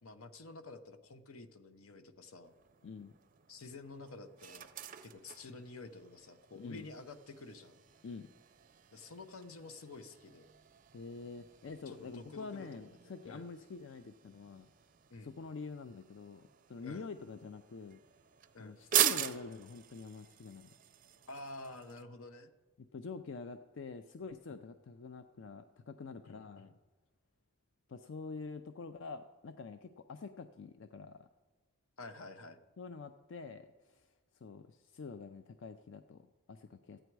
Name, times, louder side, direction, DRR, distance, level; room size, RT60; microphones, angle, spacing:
voice 1, 0.0-2.5 3.5-4.7 5.0-7.8 8.9-10.5 11.9-13.5 15.1-15.3 16.8-17.1 18.5-18.8 21.3-22.5 24.5-24.6 26.2-26.7 32.0-32.6, left 3 dB, 75° left, 10 dB, 0.8 m, -50 dB
sound 1, 2.4-22.0, right 11 dB, 40° right, 0.4 m, -42 dB
voice 2, 2.8-3.1 6.5-6.9 8.0-8.3 10.9-14.7 15.2-18.0 18.6-20.7 22.8-26.7 27.9-31.3 32.8-37.0, left 4 dB, 60° left, 9 dB, 0.4 m, -47 dB
14.0 x 9.0 x 4.6 m, 1.3 s
head